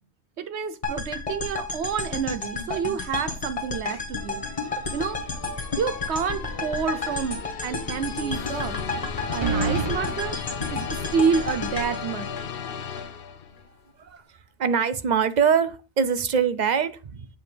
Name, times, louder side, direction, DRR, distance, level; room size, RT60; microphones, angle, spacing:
voice 1, 0.4-4.4 4.9-5.2 5.8-8.8 9.3-10.4 10.7-12.3, right 6 dB, 80° right, 11 dB, 1.0 m, -28 dB
sound 1, 0.8-13.0, left 3 dB, 30° left, 1.4 m, -32 dB
sound 2, 4.2-13.7, left 7 dB, 60° left, 0.8 m, -35 dB
sound 3, 6.3-6.8 7.1-7.2 9.4-9.9, right 4 dB, 25° right, 1.0 m, -27 dB
voice 2, 14.0-17.3, right 7 dB, 50° right, 12 dB, 0.7 m, -24 dB
8.0 x 7.0 x 3.3 m, 0.34 s
omnidirectional pair, 1.1 m